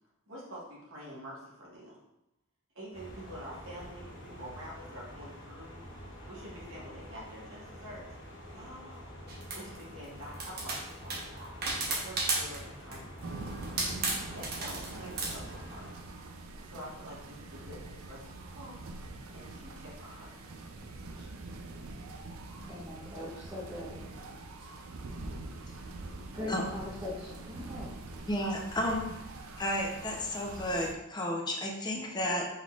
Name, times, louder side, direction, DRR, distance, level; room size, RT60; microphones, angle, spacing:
voice 1, 0.3-2.0 2.7-5.8 6.3-8.0 8.5-9.1 9.5-11.5 11.9-15.9 16.6-20.3 21.0-21.4, equal, 70° right, -5 dB, 1.6 m, -47 dB
sound 1, 2.9-15.9, equal, 65° left, 1.0 m, -48 dB
sound 2, 9.3-9.8 10.3-12.6 12.9-13.2 13.6-15.4, right 3 dB, 50° right, 0.9 m, -33 dB
sound 3, 13.2-30.9, right 2 dB, 85° right, 0.5 m, -44 dB
voice 2, 22.7-24.0 25.5-25.9 26.3-28.1, left 1 dB, 25° right, -7 dB, 0.9 m, -41 dB
voice 3, 28.3-29.2 29.6-32.5, left 1 dB, 20° left, 0 dB, 0.7 m, -32 dB
5.3 x 3.9 x 2.4 m, 0.89 s
head